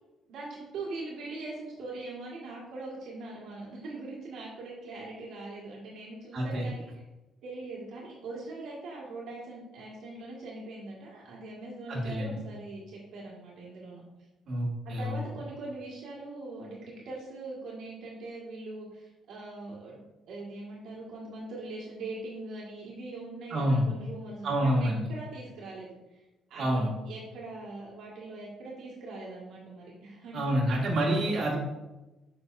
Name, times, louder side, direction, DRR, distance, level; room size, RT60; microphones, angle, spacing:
voice 1, 0.3-6.9 7.4-14.0 14.8-20.0 20.3-26.2 26.5-31.3, right 2 dB, 75° right, -5 dB, 1.9 m, -42 dB
voice 2, 6.3-6.7 11.9-12.4 14.5-15.1 23.5-23.9 24.4-25.1 26.6-26.9 30.3-31.6, right 1 dB, 55° right, -4 dB, 2.1 m, -27 dB
7.3 x 5.7 x 2.7 m, 1.0 s
cardioid pair, 110°, 0 cm